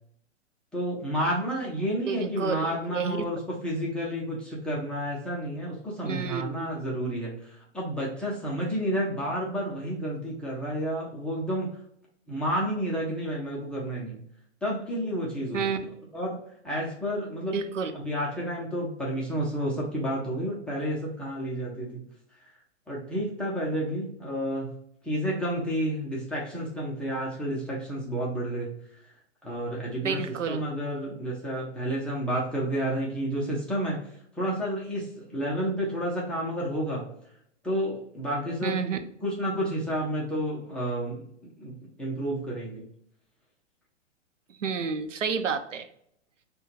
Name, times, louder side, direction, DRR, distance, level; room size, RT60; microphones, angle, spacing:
voice 1, 0.7-11.7 12.3-14.2 14.6-16.4 16.6-17.6 17.9-22.0 22.9-24.7 25.0-28.8 29.4-34.0 34.4-37.1 37.6-38.8 39.2-41.3 41.6-42.8, equal, 5° left, -6 dB, 0.3 m, -30 dB
voice 2, 2.1-3.2 6.0-6.7 15.5-15.8 17.5-17.9 30.0-30.6 38.6-39.0 44.6-45.9, right 6 dB, 85° right, 9 dB, 0.6 m, -30 dB
5.4 x 2.2 x 2.8 m, 0.69 s
figure-of-eight pair, 115°, 36 cm